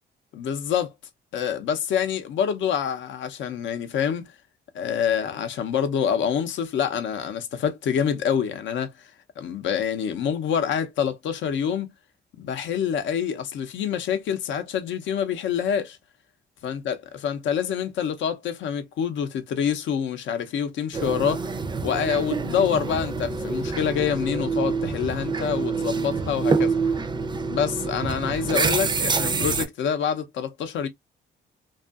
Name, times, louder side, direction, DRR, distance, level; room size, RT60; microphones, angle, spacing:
voice 1, 0.3-0.9 1.3-4.3 4.7-11.9 12.4-16.0 16.6-17.0 17.2-21.5 21.8-26.8 27.5-30.9, left 8 dB, 70° left, 0.6 m, -26 dB
sound 1, 20.9-29.7, right 4 dB, 20° right, 0.4 m, -26 dB
2.6 x 2.4 x 2.3 m
cardioid pair, 90°, 20 cm